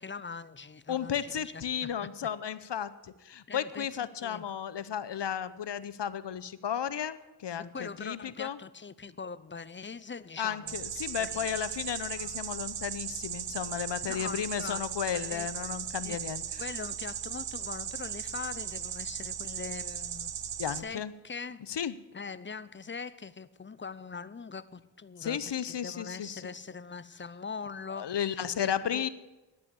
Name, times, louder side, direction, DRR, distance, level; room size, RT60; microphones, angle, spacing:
voice 1, 0.0-1.5 1.8-1.9 3.5-4.4 7.7-10.8 11.2-11.6 12.2-12.4 14.0-14.9 15.1-15.5 16.0-16.2 16.6-20.3 20.7-21.6 22.1-29.1, left 5 dB, 25° left, 0.6 m, -42 dB
voice 2, 0.9-8.6 10.4-16.6 20.6-21.1 21.7-22.0 25.2-26.5 28.0-29.1, left 8 dB, 65° left, 0.8 m, -34 dB
sound 1, 10.7-20.8, right 8 dB, 70° right, 0.9 m, -37 dB
11.5 x 8.5 x 8.3 m
cardioid pair, 60°, 45 cm